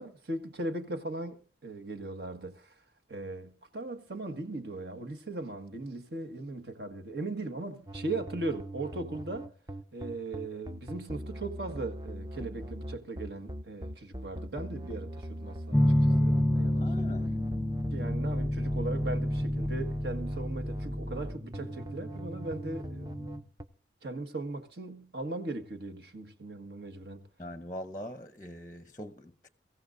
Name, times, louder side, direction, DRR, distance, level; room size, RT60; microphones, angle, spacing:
voice 1, 0.0-2.7 3.1-9.5 9.9-17.2 17.9-23.3 24.0-27.2, right 2 dB, 65° right, 1.6 m, -38 dB
sound 1, 7.9-23.6, equal, 20° right, 0.6 m, -40 dB
sound 2, 15.7-23.4, left 1 dB, ahead, 1.0 m, -29 dB
voice 2, 16.8-17.2 27.4-29.5, equal, 20° left, 0.7 m, -42 dB
23.5 x 15.0 x 2.6 m
head